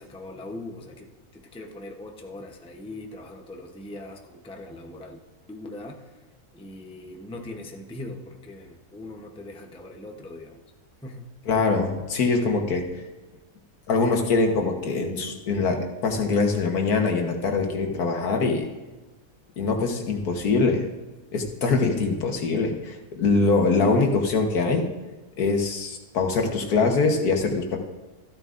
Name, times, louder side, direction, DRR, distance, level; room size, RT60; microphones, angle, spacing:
voice 1, 0.0-5.2 5.5-6.1 6.5-10.6 11.0-11.3, left 2 dB, 5° left, 2 dB, 0.5 m, -40 dB
voice 2, 11.5-12.9 13.9-18.7 19.6-20.8 21.3-24.9 25.4-27.8, left 4 dB, 80° left, 3 dB, 1.7 m, -23 dB
14.0 x 12.5 x 2.6 m, 1.2 s
omnidirectional pair, 1.6 m